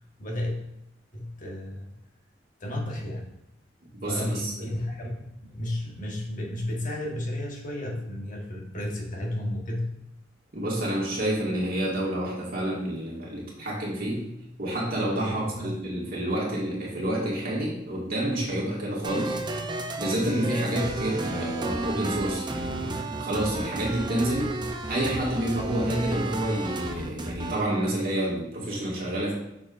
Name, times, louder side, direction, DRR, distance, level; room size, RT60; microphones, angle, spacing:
voice 1, 0.2-0.6 1.1-1.9 2.6-3.3 4.1-10.0 15.2-15.8, left 1 dB, 45° left, -1 dB, 1.5 m, -33 dB
voice 2, 3.9-4.7 10.5-14.3 14.6-19.4 20.0-24.6 24.9-29.3, right 1 dB, 50° right, -4 dB, 2.1 m, -29 dB
sound 1, 19.0-27.6, right 2 dB, 25° right, 0.6 m, -32 dB
6.8 x 6.4 x 2.6 m, 0.84 s
head